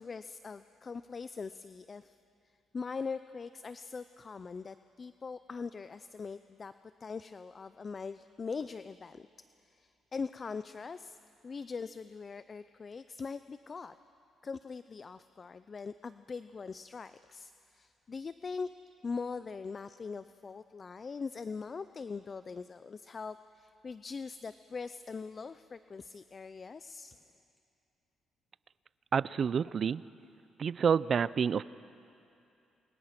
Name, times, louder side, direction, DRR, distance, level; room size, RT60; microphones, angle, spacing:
voice 1, 0.0-2.2 2.7-6.7 7.0-9.3 9.6-11.2 11.4-13.9 14.4-18.7 19.0-27.2, left 5 dB, 35° left, 13 dB, 0.5 m, -41 dB
voice 2, 29.1-30.0 30.6-31.6, right 7 dB, 50° right, 19 dB, 0.5 m, -28 dB
29.0 x 23.0 x 6.0 m, 2.6 s
cardioid pair, 90°, 0 cm